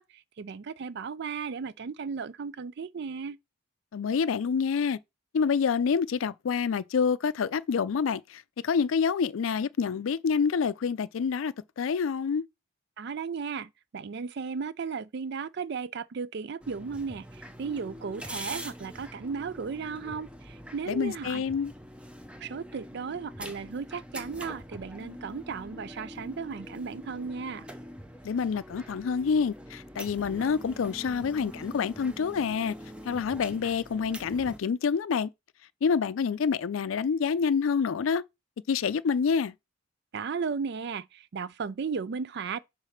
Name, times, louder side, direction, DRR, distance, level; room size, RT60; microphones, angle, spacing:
voice 1, 0.0-3.4 13.0-21.4 22.4-27.7 40.1-42.6, right 5 dB, 55° right, 0.4 m, -35 dB
voice 2, 3.9-5.0 5.3-12.4 20.9-21.7 28.2-32.8 33.0-35.3 35.8-38.2 38.7-39.5, left 6 dB, 80° left, 0.4 m, -27 dB
sound 1, 16.6-34.6, equal, 5° right, 0.6 m, -44 dB
4.9 x 3.9 x 5.7 m
head